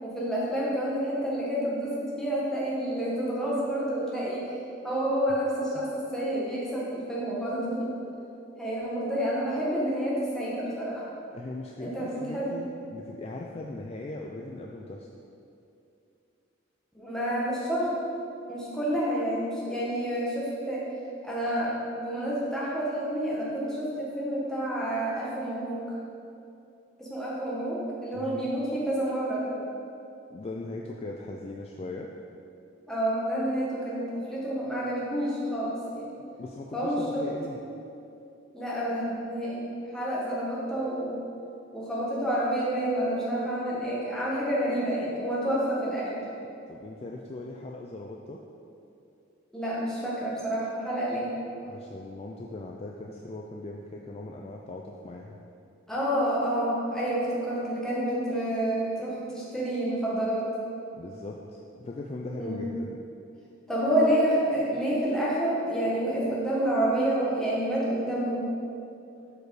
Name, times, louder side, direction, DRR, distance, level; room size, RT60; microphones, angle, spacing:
voice 1, 0.0-4.5 4.8-7.9 8.6-11.1 11.8-12.5 16.9-17.9 18.5-20.9 21.2-25.8 27.0-29.5 32.9-36.1 36.7-37.3 38.5-41.2 41.7-46.2 49.5-51.3 55.9-60.5 62.4-62.6 63.7-68.5, right 1 dB, 5° left, -7 dB, 1.4 m, -29 dB
voice 2, 11.3-15.1 28.1-28.5 30.3-32.1 36.4-37.6 46.7-48.4 51.6-55.4 61.0-63.0, left 2 dB, 30° left, 0 dB, 0.3 m, -39 dB
6.6 x 4.9 x 4.8 m, 2.7 s
head